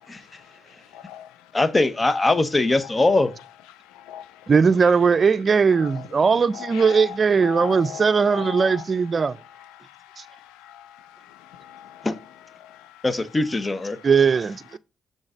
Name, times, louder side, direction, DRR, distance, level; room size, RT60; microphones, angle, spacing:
voice 1, 0.1-0.4 1.5-3.3 12.0-12.2 13.0-14.0, left 2 dB, 30° left, 0.9 m, -21 dB
voice 2, 0.9-1.3 3.9-4.5 5.8-6.0 6.5-8.8 9.8-12.1 12.6-13.0, left 11 dB, 90° left, 0.5 m, -39 dB
voice 3, 4.5-9.4 10.2-10.3 14.0-14.8, right 5 dB, 50° right, 0.5 m, -19 dB
6.3 x 4.0 x 6.2 m
supercardioid pair, 45°, 0 cm